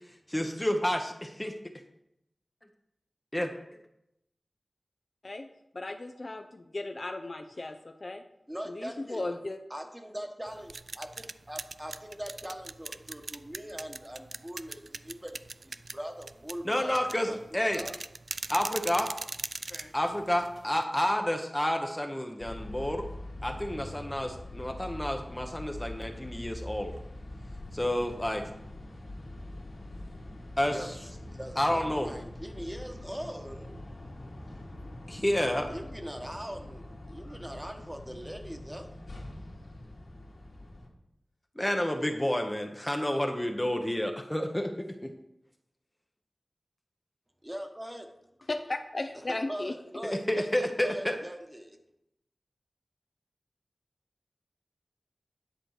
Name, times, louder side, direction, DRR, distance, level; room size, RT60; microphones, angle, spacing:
voice 1, 0.3-1.5 3.3-3.5 16.6-17.8 18.5-19.1 19.9-23.1 23.4-26.9 27.7-28.4 30.6-30.9 31.6-32.1 35.1-35.7 41.6-44.7 45.0-45.1 50.1-51.2, left 1 dB, 15° left, 4 dB, 0.8 m, -29 dB
voice 2, 5.7-8.2 8.7-9.6 19.7-19.9 48.5-49.8, left 2 dB, 50° left, 6 dB, 0.6 m, -36 dB
voice 3, 8.5-9.2 9.7-17.0 17.3-18.0 30.7-30.9 31.3-33.8 35.7-38.9 47.4-48.1 49.3-51.8, equal, 15° right, 4 dB, 1.2 m, -41 dB
sound 1, 10.5-20.8, right 3 dB, 70° right, 0.3 m, -41 dB
sound 2, 22.4-40.9, left 1 dB, 75° left, 2.1 m, -44 dB
10.5 x 4.4 x 6.5 m, 0.83 s
wide cardioid pair, 80°, 0 cm